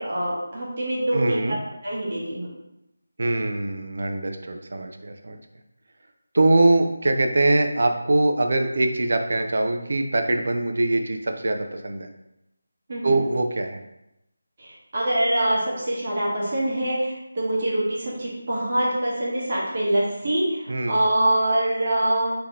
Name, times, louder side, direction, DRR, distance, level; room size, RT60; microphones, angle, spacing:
voice 1, 0.0-1.6 1.8-2.5 12.9-13.2 14.6-22.3, right 1 dB, 30° right, -5 dB, 1.0 m, -24 dB
voice 2, 1.1-1.6 3.2-5.4 6.3-12.1 13.0-13.8 20.7-21.0, right 2 dB, 45° right, 5 dB, 0.4 m, -22 dB
3.7 x 2.8 x 3.5 m, 0.88 s
figure-of-eight pair, 180°, 0 cm